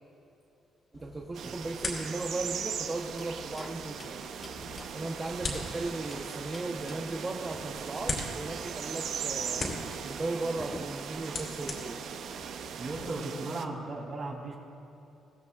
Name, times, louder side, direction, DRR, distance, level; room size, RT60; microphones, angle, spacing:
sound 1, 0.9-13.1, left 3 dB, 50° left, 2.7 m, -42 dB
voice 1, 0.9-4.2 4.6-9.6 10.0-12.1, right 2 dB, 25° right, 0 dB, 0.9 m, -37 dB
sound 2, 1.3-13.7, right 7 dB, 70° right, 0.6 m, -39 dB
sound 3, 3.2-5.8 6.1-7.3 9.2-9.3 9.6-11.2, left 1 dB, 20° left, 1.2 m, -47 dB
voice 2, 12.8-14.6, right 2 dB, 50° right, -1 dB, 3.2 m, -36 dB
22.0 x 15.5 x 2.4 m, 2.8 s
cardioid pair, 90°, 0 cm